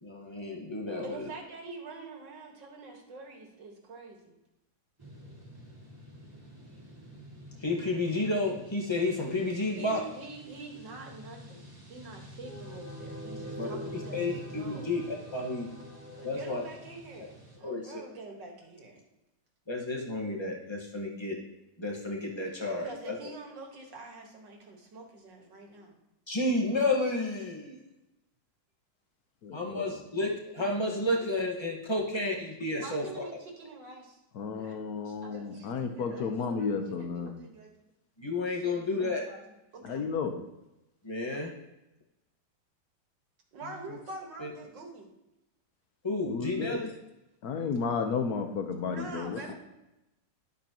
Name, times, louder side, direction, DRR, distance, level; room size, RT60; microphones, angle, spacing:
voice 1, 0.0-1.3 7.6-10.0 13.6-15.0 15.3-15.7 16.2-16.6 17.6-18.0 19.7-21.4 21.8-23.1 26.3-27.8 29.5-33.2 38.2-39.2 41.0-41.5 43.9-44.0 44.4-44.5 46.0-46.9, left 2 dB, 15° left, -1 dB, 1.4 m, -31 dB
voice 2, 1.0-4.4 9.7-14.9 16.2-19.0 22.8-25.9 29.6-30.8 31.6-34.2 34.5-34.8 35.0-37.7 38.5-39.4 39.7-40.1 43.5-45.1 48.9-49.5, right 3 dB, 75° right, 1 dB, 2.3 m, -46 dB
sound 1, 5.0-17.6, equal, 10° right, 2.2 m, -46 dB
voice 3, 29.4-30.0 34.3-37.3 39.8-40.3 46.3-46.8 47.4-49.4, left 5 dB, 60° left, 5 dB, 1.4 m, -32 dB
11.5 x 8.0 x 3.0 m, 0.92 s
omnidirectional pair, 2.0 m